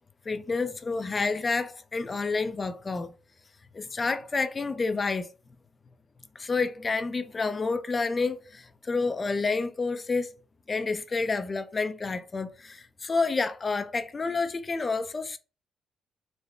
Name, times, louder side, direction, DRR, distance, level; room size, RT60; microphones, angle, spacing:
voice 1, 0.3-3.1 3.7-5.3 6.4-10.3 10.7-15.4, left 4 dB, 30° left, 0.4 m, -29 dB
3.7 x 2.0 x 3.3 m
cardioid pair, 90°, 0 cm